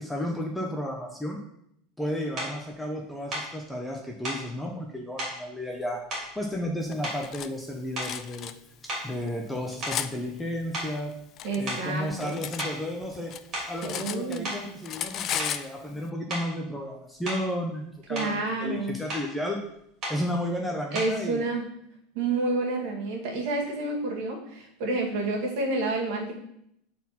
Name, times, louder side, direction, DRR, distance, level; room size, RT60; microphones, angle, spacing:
voice 1, 0.0-1.4 2.0-6.0 6.4-8.5 8.8-11.1 11.6-13.3 13.7-19.6 20.1-21.4, left 1 dB, 5° left, 0 dB, 0.7 m, -33 dB
sound 1, 2.4-2.6 3.3-3.5 4.2-4.5 5.2-5.4 6.1-6.7 7.0-7.4 7.9-8.3 8.9-10.4 10.7-11.0 11.7-11.9 12.6-12.8 13.3-13.8 14.4-14.7 15.4-15.6 16.3-16.5 17.2-17.5 17.9-18.4 19.1-19.3 20.0-20.2 20.9-21.2, right 1 dB, 25° right, 3.2 m, -35 dB
Cutlery silverware, 6.9-7.5 8.0-8.5 9.2-10.1 11.0-12.7 13.0-14.6 14.8-15.7, left 10 dB, 30° left, 0.3 m, -34 dB
voice 2, 11.4-12.4 13.8-14.5 18.1-18.9 20.9-21.6 22.1-26.3, right 2 dB, 55° right, -1 dB, 2.1 m, -29 dB
8.5 x 4.2 x 4.2 m, 0.75 s
supercardioid pair, 175°, 0 cm